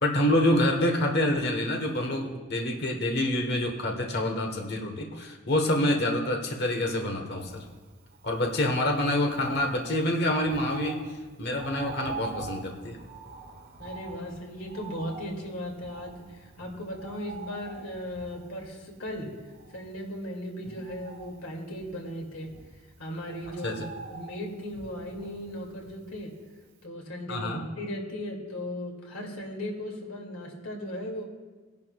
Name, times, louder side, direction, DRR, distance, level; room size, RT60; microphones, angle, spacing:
voice 1, 0.0-7.7 8.2-11.0 11.4-13.0 23.6-23.8 27.3-27.6, left 1 dB, 50° left, 2 dB, 1.2 m, -27 dB
Bird, 7.4-26.5 26.8-26.9, right 4 dB, 45° right, 1.7 m, -45 dB
voice 2, 13.8-19.4 19.7-22.5 23.0-23.8 24.1-26.3 26.8-31.2, equal, 80° left, -1 dB, 2.4 m, -37 dB
21.0 x 11.0 x 2.3 m, 1.3 s
head